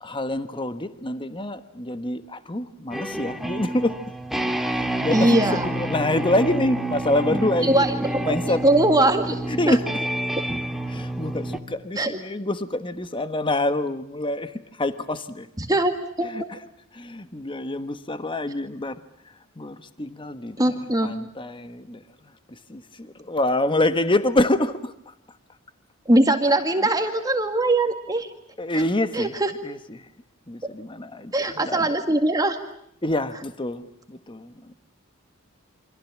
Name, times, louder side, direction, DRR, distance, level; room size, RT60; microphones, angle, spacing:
voice 1, 0.0-4.0 4.7-8.6 9.5-9.8 10.9-15.5 16.2-16.6 16.9-19.0 19.2-20.7 21.0-22.0 22.5-25.1 28.6-29.3 29.6-30.1 30.5-31.9 33.0-34.7, left 1 dB, 25° left, 1.3 m, -26 dB
sound 1, 2.9-11.6, right 1 dB, ahead, 1.9 m, -29 dB
voice 2, 5.1-5.7 7.6-8.3 8.6-9.4 9.7-9.8 12.0-12.1 15.6-16.3 20.6-21.1 26.1-28.3 29.1-29.5 31.3-32.6, right 1 dB, 20° right, 2.0 m, -21 dB
28.5 x 26.0 x 7.4 m
head